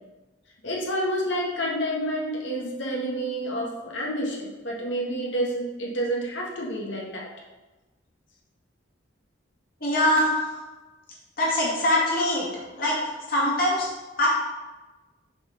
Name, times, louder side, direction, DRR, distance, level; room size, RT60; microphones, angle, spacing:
voice 1, 0.6-7.3, equal, 70° left, -3 dB, 1.7 m, -29 dB
voice 2, 9.8-10.4 11.4-12.5 12.8-13.0 13.3-13.9 14.2-14.3, left 1 dB, 50° left, -5 dB, 2.3 m, -22 dB
6.7 x 4.4 x 5.2 m, 1.2 s
head